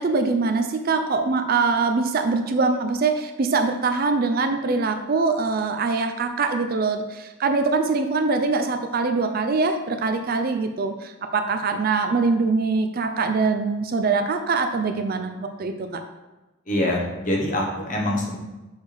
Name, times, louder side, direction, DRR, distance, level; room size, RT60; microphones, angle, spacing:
voice 1, 0.0-16.0, right 4 dB, 45° right, 6 dB, 0.4 m, -23 dB
voice 2, 16.7-18.4, left 1 dB, 40° left, -2 dB, 1.1 m, -24 dB
6.3 x 4.9 x 3.4 m, 1.1 s
head